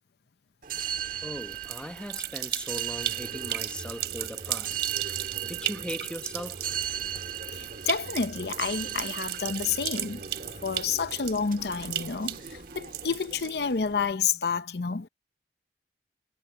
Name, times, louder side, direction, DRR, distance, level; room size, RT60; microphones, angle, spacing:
sound 1, 0.6-14.1, right 8 dB, 50° right, 1.7 m, -38 dB
voice 1, 1.2-4.8 5.4-6.7, equal, 5° left, 1.1 m, -39 dB
sound 2, 1.4-13.9, right 13 dB, 70° right, 3.4 m, -36 dB
voice 2, 7.5-10.3 10.6-15.1, left 5 dB, 65° left, 0.7 m, -29 dB
head